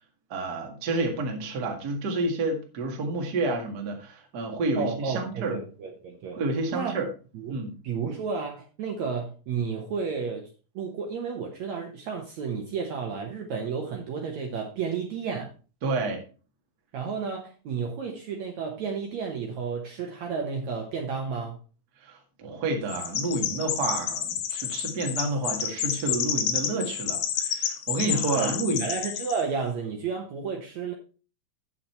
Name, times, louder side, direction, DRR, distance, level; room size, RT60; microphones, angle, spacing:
voice 1, 0.3-5.5 6.3-7.1 7.5-7.7 15.8-16.2 22.0-28.9, right 2 dB, 40° right, 2 dB, 1.6 m, -29 dB
voice 2, 4.8-6.4 6.7-6.9 7.3-7.5 7.8-10.5 10.8-15.5 16.9-21.6 28.1-30.9, right 5 dB, 65° right, 2 dB, 2.0 m, -32 dB
Chirp tweet, 22.9-29.4, left 9 dB, 70° left, 2.2 m, -30 dB
9.0 x 7.5 x 4.3 m, 0.36 s
omnidirectional pair, 4.3 m